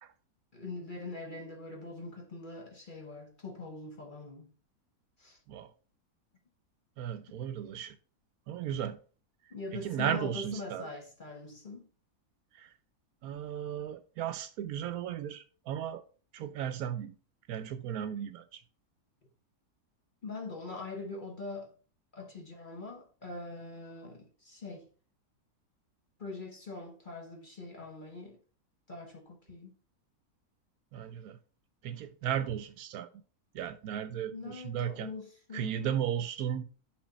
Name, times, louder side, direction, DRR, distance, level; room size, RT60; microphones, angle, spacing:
voice 1, 0.5-4.5 5.2-5.4 9.5-11.9 20.2-21.7 22.1-24.9 26.2-28.4 28.9-29.8 34.3-36.0, left 3 dB, 40° left, 1.0 m, -43 dB
voice 2, 7.0-8.0 8.5-9.0 9.5-10.9 12.5-12.7 13.2-16.0 16.3-17.2 17.5-18.6 30.9-31.4 31.8-33.1 33.5-35.1 35.5-36.7, right 9 dB, 75° right, 1.0 m, -35 dB
6.2 x 4.1 x 4.1 m
omnidirectional pair, 1.6 m